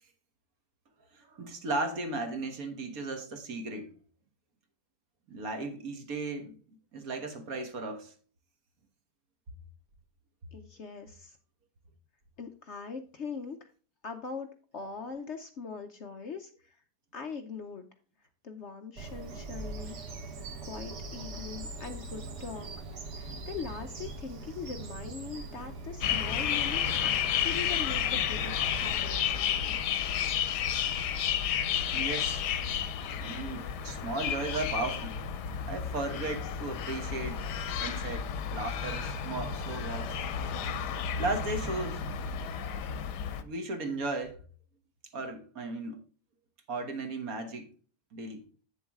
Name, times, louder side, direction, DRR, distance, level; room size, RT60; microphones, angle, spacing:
voice 1, 1.1-3.9 5.3-6.6 6.9-8.1 31.9-32.4 33.2-35.2 35.7-37.4 37.8-40.1 41.2-42.0 43.4-44.4 45.1-46.0 46.7-47.7 48.1-48.5, right 2 dB, 60° right, 1.7 m, -36 dB
voice 2, 10.5-11.4 12.4-13.7 14.0-16.8 17.1-17.9 18.2-20.3 20.6-22.7 23.1-29.8, left 5 dB, 55° left, 0.9 m, -41 dB
Bird vocalization bird call bird song, 19.0-29.0, right 3 dB, 90° right, 1.9 m, -42 dB
sound 1, 26.0-43.4, left 8 dB, 90° left, 1.3 m, -32 dB
8.0 x 7.1 x 3.5 m
omnidirectional pair, 1.7 m